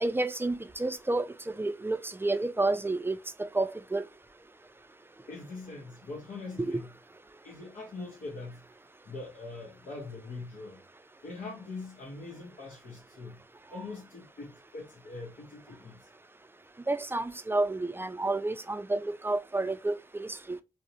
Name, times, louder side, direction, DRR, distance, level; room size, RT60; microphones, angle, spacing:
voice 1, 0.0-4.0 16.9-20.6, right 2 dB, 15° right, 0.3 m, -30 dB
voice 2, 5.3-7.0 7.4-8.7 9.0-10.8 11.2-13.4 13.7-16.1, left 3 dB, 80° left, 0.7 m, -42 dB
2.6 x 2.0 x 2.6 m
cardioid pair, 50°, 14 cm